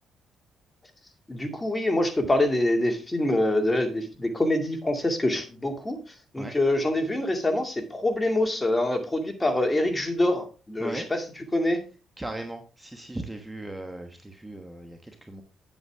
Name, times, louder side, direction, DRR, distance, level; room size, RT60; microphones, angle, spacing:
voice 1, 1.3-6.0 6.3-11.2 11.5-11.8, left 1 dB, 15° left, 5 dB, 2.2 m, -25 dB
voice 2, 12.2-15.4, right 1 dB, 10° right, 5 dB, 1.2 m, -37 dB
9.1 x 8.3 x 3.5 m, 0.32 s
cardioid pair, 90°, 0 cm